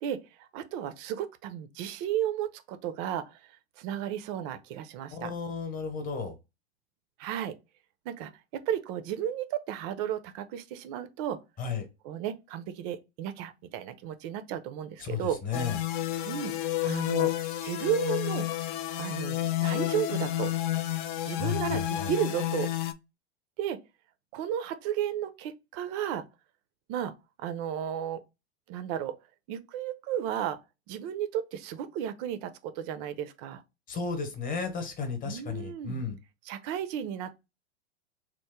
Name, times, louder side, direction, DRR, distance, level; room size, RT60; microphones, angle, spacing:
voice 1, 0.0-3.5 3.8-5.3 7.2-7.6 8.1-11.4 12.0-15.4 16.2-16.5 16.8-18.5 19.0-20.5 21.3-22.7 23.6-23.8 24.3-26.3 26.9-28.2 28.7-29.2 29.5-30.6 30.9-33.6 35.2-36.1 36.5-37.4, right 10 dB, 40° right, 0.4 m, -33 dB
voice 2, 5.1-6.3 11.6-11.8 15.0-15.8 21.4-22.1 33.9-36.2, left 5 dB, 25° left, 0.9 m, -33 dB
sound 1, 15.5-22.9, left 13 dB, 50° left, 0.4 m, -30 dB
3.0 x 2.1 x 3.4 m
hypercardioid pair, 105°, 33 cm